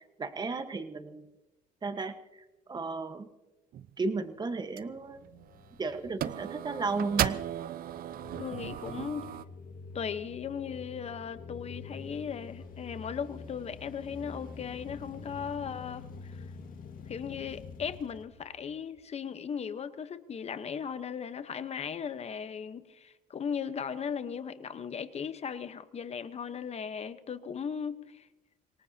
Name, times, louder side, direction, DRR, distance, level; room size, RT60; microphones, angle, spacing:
voice 1, 0.2-1.3 1.8-2.2 2.7-3.3 4.0-5.2 5.8-7.4, right 3 dB, 25° right, 9 dB, 1.3 m, -34 dB
sound 1, 3.7-4.0 4.8-4.9 5.2-5.8 6.2-9.4, right 11 dB, 60° right, 0.6 m, -35 dB
sound 2, 4.7-19.0, left 5 dB, 55° left, 2.0 m, -47 dB
voice 2, 8.4-9.3 9.9-16.4 17.1-28.3, left 7 dB, 40° left, 12 dB, 1.0 m, -37 dB
26.0 x 18.5 x 2.9 m, 1.1 s
cardioid pair, 110°, 17 cm